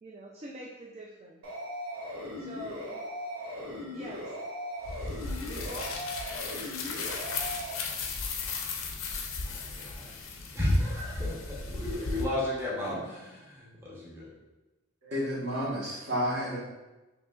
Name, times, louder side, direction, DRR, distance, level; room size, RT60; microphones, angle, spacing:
voice 1, 0.0-1.4 2.4-3.0 3.9-4.3 5.5-5.8, right 1 dB, 30° right, -2 dB, 0.3 m, -44 dB
sound 1, 1.4-7.7, equal, 80° right, 0.8 m, -38 dB
sound 2, 4.8-12.2, left 4 dB, 70° left, 0.5 m, -36 dB
voice 2, 9.4-10.1 10.5-14.3, left 1 dB, 10° right, -7 dB, 0.8 m, -32 dB
voice 3, 15.0-16.6, equal, 55° right, -7 dB, 1.2 m, -31 dB
4.8 x 2.8 x 2.3 m, 1.1 s
head